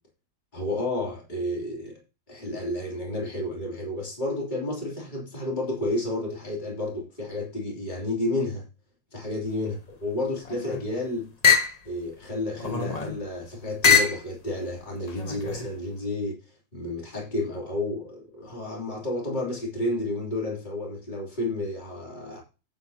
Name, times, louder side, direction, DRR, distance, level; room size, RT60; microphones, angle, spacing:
voice 1, 0.5-2.0 2.3-8.6 9.1-11.3 11.8-22.4, left 2 dB, 20° left, 3.2 m, -31 dB
sound 1, 10.3-10.9 11.4-11.8 12.5-13.2 13.8-14.2 15.1-15.7, left 6 dB, 80° left, 0.3 m, -23 dB
10.0 x 9.6 x 2.8 m
omnidirectional pair, 2.1 m